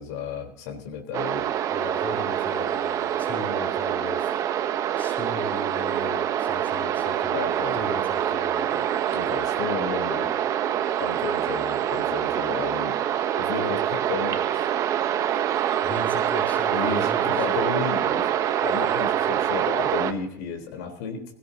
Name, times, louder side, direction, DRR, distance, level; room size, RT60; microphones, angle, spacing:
voice 1, 0.0-1.5 7.3-7.8 9.1-10.3 11.0-13.0 13.4-14.7 16.7-18.3 18.6-21.3, left 6 dB, 75° left, 3 dB, 3.8 m, -33 dB
sound 1, 1.1-20.1, right 10 dB, 40° right, 1.0 m, -25 dB
voice 2, 1.7-4.3 5.0-7.5 7.7-8.9 15.8-17.7, left 2 dB, 20° left, -1 dB, 4.0 m, -36 dB
19.5 x 16.5 x 2.8 m, 0.72 s
supercardioid pair, 130°, 9 cm